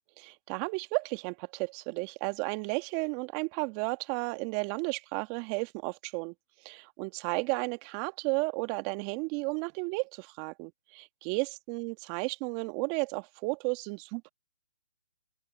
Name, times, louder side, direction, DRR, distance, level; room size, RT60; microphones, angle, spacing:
voice 1, 0.2-6.3 6.6-14.3, right 30 dB, 30° right, 2.2 m, -33 dB
open air
hypercardioid pair, 135°, 3 cm